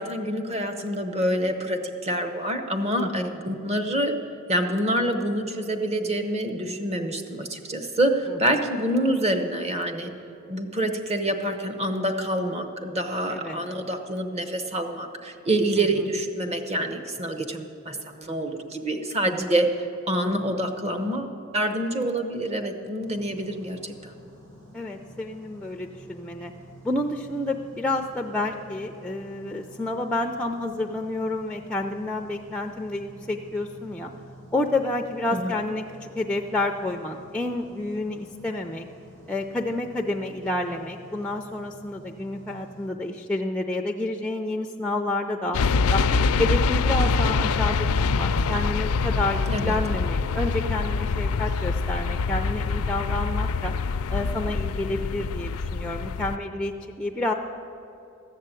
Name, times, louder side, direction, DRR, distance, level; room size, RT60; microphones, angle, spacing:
voice 1, 0.0-4.1 4.5-10.1 10.5-19.7 20.1-24.2 35.3-35.4 49.5-49.7, right 1 dB, 30° right, 5 dB, 0.9 m, -27 dB
voice 2, 3.0-3.4 13.3-13.6 15.8-15.9 19.2-19.5 24.7-26.5 26.8-34.1 34.5-38.9 39.3-46.0 46.4-47.9 48.1-53.7 54.1-57.3, left 2 dB, 5° left, 3 dB, 0.4 m, -29 dB
sound 1, 23.0-42.9, right 1 dB, 75° right, 3.6 m, -49 dB
sound 2, 45.5-56.4, left 4 dB, 80° left, 0.4 m, -25 dB
14.0 x 6.6 x 8.9 m, 2.7 s
head